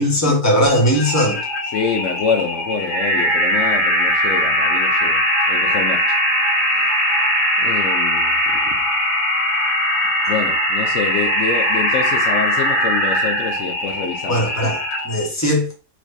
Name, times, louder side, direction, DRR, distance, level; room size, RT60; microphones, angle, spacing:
voice 1, 0.0-1.4 14.3-14.8 15.0-15.7, equal, 10° left, 1.0 m, -18 dB
sound 1, 0.7-15.2, equal, 45° left, 1.9 m, -20 dB
voice 2, 1.7-5.2 5.5-6.1 6.7-6.9 7.6-8.8 10.3-14.5, left 6 dB, 85° left, 0.6 m, -26 dB
4.6 x 4.2 x 2.7 m
omnidirectional pair, 2.1 m